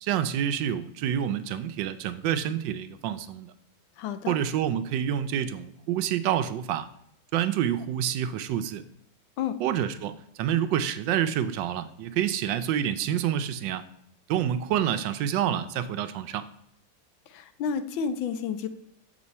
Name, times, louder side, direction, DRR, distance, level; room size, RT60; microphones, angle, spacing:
voice 1, 0.0-3.5 4.3-6.9 7.3-8.8 9.6-13.8 14.3-16.4, right 10 dB, 75° right, 11 dB, 1.2 m, -28 dB
voice 2, 4.0-4.3 9.4-9.6 17.3-18.7, left 7 dB, 85° left, 11 dB, 1.4 m, -30 dB
6.9 x 6.2 x 4.2 m, 0.74 s
omnidirectional pair, 2.1 m